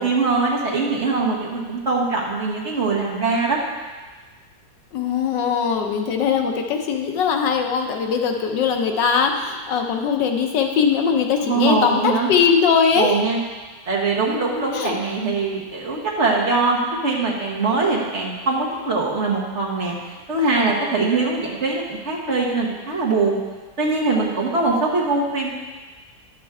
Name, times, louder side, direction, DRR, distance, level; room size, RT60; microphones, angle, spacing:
voice 1, 0.0-3.6 11.5-12.3 13.0-13.4 13.9-23.4 23.8-25.5, right 3 dB, 45° right, -3 dB, 1.3 m, -22 dB
voice 2, 4.9-13.2 14.7-15.0, left 6 dB, 90° left, 3 dB, 1.5 m, -20 dB
11.0 x 6.6 x 3.5 m, 1.4 s
omnidirectional pair, 1.9 m